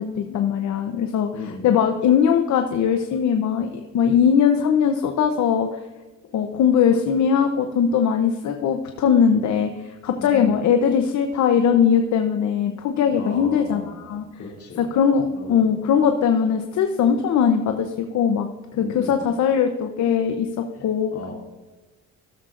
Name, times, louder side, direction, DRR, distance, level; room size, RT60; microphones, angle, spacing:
voice 1, 0.0-5.8 6.3-14.2 14.8-21.3, left 7 dB, 70° left, 6 dB, 0.8 m, -20 dB
voice 2, 1.3-1.7 10.2-10.5 13.2-14.9 15.3-15.6 18.8-19.2 20.8-20.9 21.1-21.3, left 4 dB, 50° left, 0 dB, 2.6 m, -36 dB
15.5 x 7.3 x 2.5 m, 1.2 s
cardioid pair, 90°, 30 cm